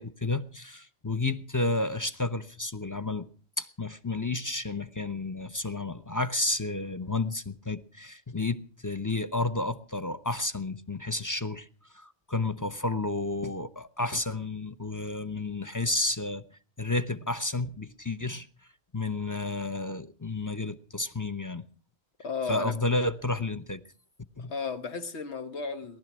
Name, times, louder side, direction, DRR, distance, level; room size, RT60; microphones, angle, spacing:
voice 1, 0.0-3.3 3.6-11.7 11.9-16.4 16.8-18.5 18.9-21.7 22.5-23.8 24.4-24.5, left 2 dB, 20° left, 0.6 m, -31 dB
voice 2, 22.2-22.8 24.4-26.0, left 4 dB, 85° left, 1.5 m, -34 dB
19.0 x 12.0 x 6.1 m
omnidirectional pair, 1.1 m